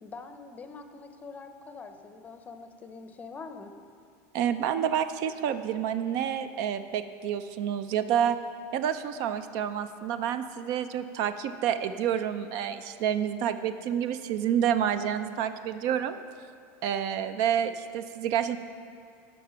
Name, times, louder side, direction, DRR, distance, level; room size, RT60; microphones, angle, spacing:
voice 1, 0.0-3.8, left 4 dB, 20° left, 7 dB, 0.6 m, -44 dB
voice 2, 4.3-8.4 8.7-16.2 16.8-18.6, right 9 dB, 55° right, 11 dB, 0.4 m, -29 dB
12.0 x 5.1 x 5.8 m, 2.3 s
supercardioid pair, 140°, 8 cm